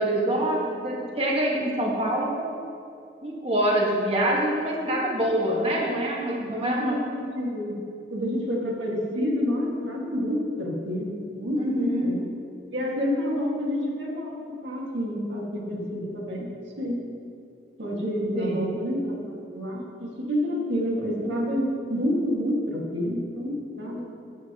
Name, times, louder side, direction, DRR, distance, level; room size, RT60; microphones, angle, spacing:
voice 1, 0.0-2.5 3.2-7.0 11.6-12.1 18.3-18.7, right 1 dB, 30° right, -3 dB, 1.5 m, -25 dB
voice 2, 6.4-7.8 8.1-12.2 12.7-16.5 16.8-17.0 17.8-19.2 19.5-24.0, equal, 85° right, -2 dB, 1.9 m, -28 dB
14.0 x 8.5 x 3.0 m, 2.6 s
head